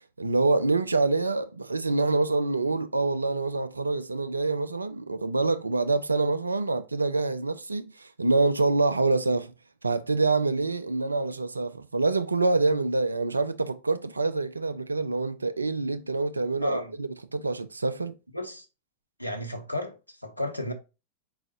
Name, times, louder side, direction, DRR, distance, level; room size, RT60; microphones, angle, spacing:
voice 1, 0.2-9.5 9.8-18.1, right 3 dB, 80° right, 0.5 m, -26 dB
voice 2, 16.6-16.9 18.3-18.7 19.2-20.7, left 1 dB, 90° left, 0.9 m, -33 dB
4.9 x 3.9 x 2.8 m
figure-of-eight pair, 90°, 0 cm